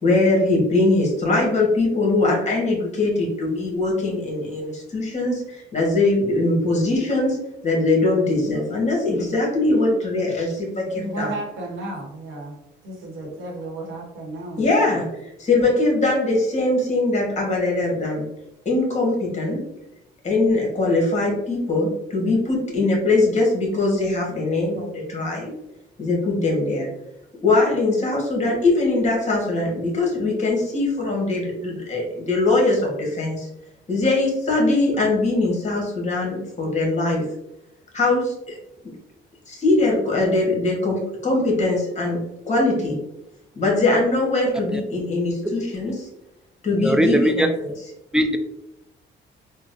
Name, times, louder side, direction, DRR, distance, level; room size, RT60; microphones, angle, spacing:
voice 1, 0.0-7.4 7.6-11.3 14.6-15.1 15.4-18.2 18.6-19.6 20.2-25.5 26.0-26.9 27.4-33.5 33.9-37.2 37.9-38.6 39.5-42.2 42.5-43.0 43.6-46.1 46.6-47.7, left 2 dB, 35° left, -1 dB, 1.3 m, -21 dB
voice 2, 10.9-12.5 12.8-15.0, right 2 dB, 80° right, -1 dB, 1.1 m, -33 dB
voice 3, 46.8-47.5 48.1-48.4, equal, 5° right, 6 dB, 0.3 m, -19 dB
3.8 x 2.1 x 2.6 m, 0.86 s
cardioid pair, 90°, 20 cm